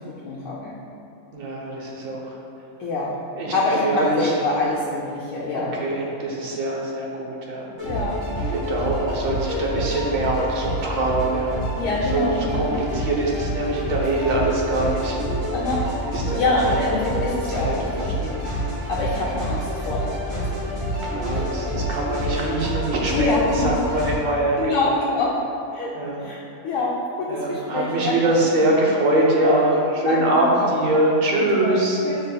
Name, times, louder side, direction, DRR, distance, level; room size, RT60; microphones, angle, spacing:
voice 1, 0.2-0.7 2.8-3.1 3.5-5.7 7.8-8.2 11.8-12.7 15.5-15.8 16.3-18.4 18.9-19.6 19.8-20.1 20.7-21.2 21.7-21.9 23.1-23.8 24.6-25.3 25.7-25.9 26.2-26.4 26.6-26.9 27.2-28.2 28.4-28.6 29.4-30.7 31.4-31.8 32.0-32.2, left 3 dB, 80° left, -7 dB, 1.0 m, -25 dB
voice 2, 1.3-2.4 3.3-3.5 3.8-4.5 5.5-7.6 8.4-11.6 12.1-15.4 16.0-18.4 19.1-19.4 21.0-25.0 25.9-26.3 27.3-32.0, right 1 dB, 50° right, -2 dB, 0.6 m, -24 dB
sound 1, 7.8-24.1, equal, 80° right, 2.0 m, -28 dB
6.6 x 3.3 x 2.2 m, 2.7 s
omnidirectional pair, 1.4 m